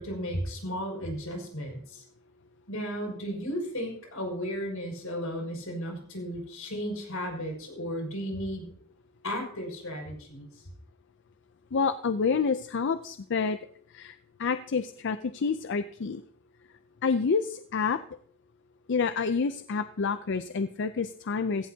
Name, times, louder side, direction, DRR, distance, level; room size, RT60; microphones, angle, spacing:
voice 1, 0.0-2.0 2.7-8.7 9.2-10.5, equal, 85° left, 1 dB, 5.7 m, -34 dB
voice 2, 11.7-13.6 13.9-16.2 17.0-18.0 18.9-21.7, left 5 dB, 60° left, 11 dB, 0.5 m, -28 dB
16.5 x 15.5 x 2.8 m, 0.62 s
head